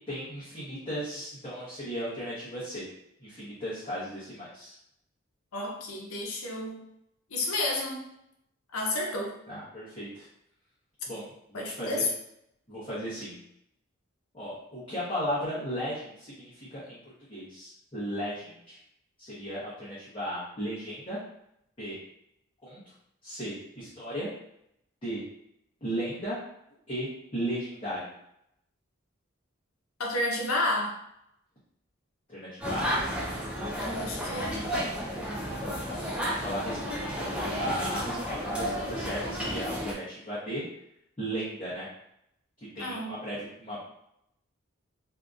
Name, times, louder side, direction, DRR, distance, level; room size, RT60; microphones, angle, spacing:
voice 1, 0.1-2.8 3.2-4.8 9.5-10.3 11.1-12.0 12.7-13.4 14.3-17.0 17.3-18.8 19.2-21.2 21.8-22.0 22.6-22.9 23.2-24.3 25.0-25.2 25.8-26.4 26.9-28.1 32.3-32.9 35.9-40.6 41.2-41.9 42.7-43.8, equal, 25° left, -11 dB, 0.8 m, -36 dB
voice 2, 5.5-6.8 7.3-8.0 8.7-9.3 11.5-12.1 30.0-31.0 33.8-34.7 42.8-43.1, left 2 dB, 90° left, 0 dB, 0.6 m, -31 dB
sound 1, 32.6-39.9, equal, 5° right, 0.3 m, -32 dB
2.7 x 2.5 x 2.3 m, 0.76 s
head